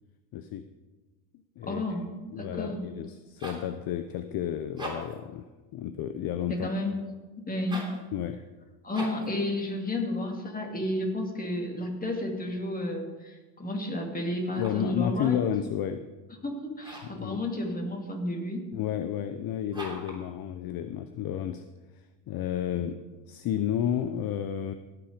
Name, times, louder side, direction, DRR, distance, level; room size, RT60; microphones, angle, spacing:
voice 1, 0.3-0.7 1.6-1.8 2.3-5.5 5.7-6.7 8.1-8.5 14.6-16.1 17.0-17.4 18.7-21.6 22.3-23.0 23.3-24.7, left 10 dB, 50° left, 10 dB, 0.7 m, -31 dB
voice 2, 1.6-2.8 6.5-7.0 7.4-7.8 8.8-15.5 16.4-18.6 22.8-22.9, left 1 dB, 20° left, 2 dB, 2.4 m, -32 dB
sound 1, 3.1-3.7 4.6-5.3 7.6-8.0 8.9-9.3 14.4-14.9 16.8-17.2 19.7-20.2, right 1 dB, 10° right, 3.3 m, -40 dB
17.0 x 6.0 x 5.0 m, 1.2 s
supercardioid pair, 100°, 47 cm